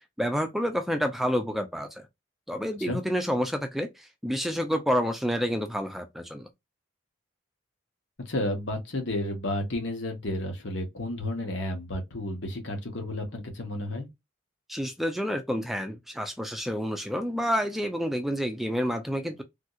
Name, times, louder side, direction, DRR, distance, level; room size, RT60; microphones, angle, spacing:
voice 1, 0.2-2.1 2.5-6.5 14.7-19.4, equal, ahead, 0.5 m, -29 dB
voice 2, 8.3-14.1, left 1 dB, 70° left, 1.3 m, -32 dB
3.5 x 2.9 x 2.4 m
head